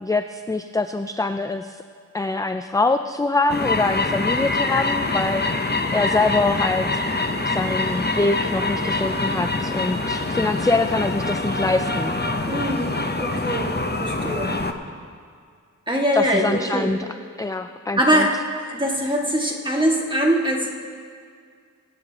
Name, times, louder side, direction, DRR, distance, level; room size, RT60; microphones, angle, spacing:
voice 1, 0.0-1.8 2.1-5.4 5.9-6.9 7.5-12.2 16.1-17.0 17.4-18.3, left 3 dB, 10° left, 9 dB, 0.3 m, -24 dB
sound 1, 3.5-14.7, left 2 dB, 30° left, 0.8 m, -25 dB
voice 2, 12.5-12.9 13.2-13.7 14.0-14.6 15.9-16.9 18.0-18.3 18.7-20.7, equal, 15° right, -2 dB, 2.0 m, -22 dB
23.0 x 9.4 x 2.9 m, 2.1 s
wide cardioid pair, 50°, 32 cm